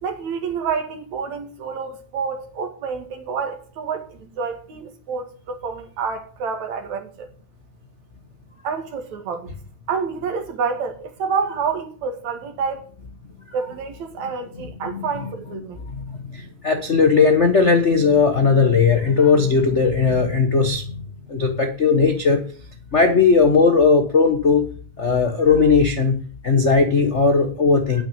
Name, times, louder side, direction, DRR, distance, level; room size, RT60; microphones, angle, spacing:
voice 1, 0.0-7.3 8.6-9.5 9.9-12.9 13.5-15.8, right 5 dB, 70° right, 3.2 m, -28 dB
voice 2, 16.0-20.8 21.3-22.4 22.9-24.6 25.0-26.1 26.4-28.0, left 5 dB, 75° left, 0.6 m, -17 dB
9.2 x 7.1 x 8.6 m
omnidirectional pair, 3.3 m